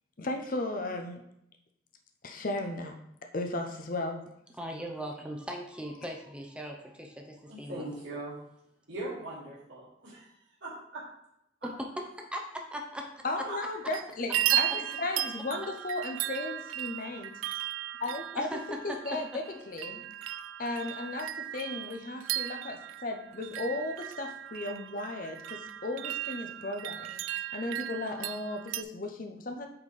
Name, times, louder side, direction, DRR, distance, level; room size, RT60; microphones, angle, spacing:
voice 1, 0.2-1.2 2.2-2.9 3.3-4.2 13.2-17.3 18.0-18.5 18.8-20.0 20.6-27.2 27.5-29.7, left 2 dB, 45° left, 4 dB, 0.6 m, -35 dB
voice 2, 4.6-8.2 11.8-13.5 18.3-18.6 18.9-19.2, equal, 5° right, 1 dB, 0.7 m, -39 dB
voice 3, 7.5-8.4 8.9-10.3 10.6-11.0 13.5-13.6, right 2 dB, 65° right, -8 dB, 2.0 m, -40 dB
sound 1, 13.6-14.0 14.3-28.8, right 13 dB, 85° right, 0.3 m, -36 dB
8.5 x 4.2 x 3.3 m, 0.79 s
head